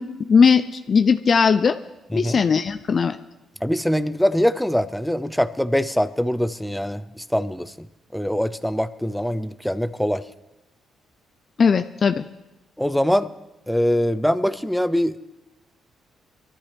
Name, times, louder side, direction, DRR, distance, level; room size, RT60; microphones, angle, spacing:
voice 1, 0.0-1.8 2.1-3.2 11.6-12.2, left 5 dB, 45° left, 10 dB, 0.5 m, -18 dB
voice 2, 2.1-2.4 3.6-7.9 8.1-10.2 12.8-13.3 13.7-15.2, equal, ahead, 13 dB, 0.6 m, -23 dB
22.5 x 13.5 x 3.4 m, 1.0 s
cardioid pair, 90°, 0 cm